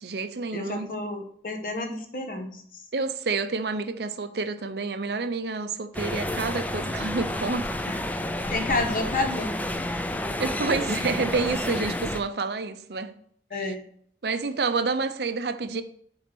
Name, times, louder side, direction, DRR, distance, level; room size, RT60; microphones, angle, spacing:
voice 1, 0.0-0.9 2.9-7.7 10.4-13.1 13.5-13.7 14.2-15.8, right 4 dB, 65° right, 0.6 m, -29 dB
voice 2, 0.5-2.6 7.8-8.0 8.5-9.9 13.5-13.8, left 2 dB, 50° left, 1.1 m, -30 dB
sound 1, 5.9-12.2, left 1 dB, 10° left, 0.4 m, -30 dB
7.7 x 4.1 x 6.1 m
head